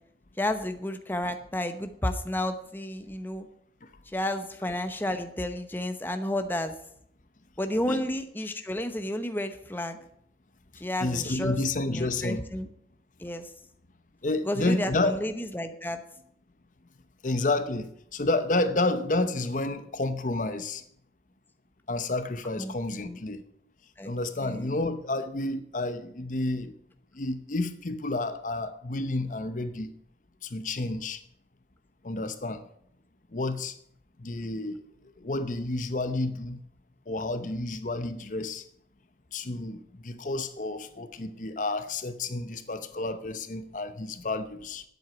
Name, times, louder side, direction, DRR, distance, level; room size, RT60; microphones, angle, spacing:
voice 1, 0.4-3.5 4.1-6.8 7.6-10.0 10.8-11.6 11.9-12.7 13.2-13.5 14.4-16.0 22.6-22.7 23.0-23.2 24.0-24.1 24.4-24.8, left 1 dB, 10° left, 0.8 m, -31 dB
voice 2, 11.0-12.4 14.2-15.2 17.2-20.8 21.9-23.4 24.0-26.7 27.1-29.9 30.4-31.2 32.0-32.6 33.3-33.7 34.2-34.8 35.2-36.6 37.1-38.6 39.3-44.8, left 2 dB, 45° left, 0.8 m, -30 dB
9.2 x 8.0 x 8.7 m
head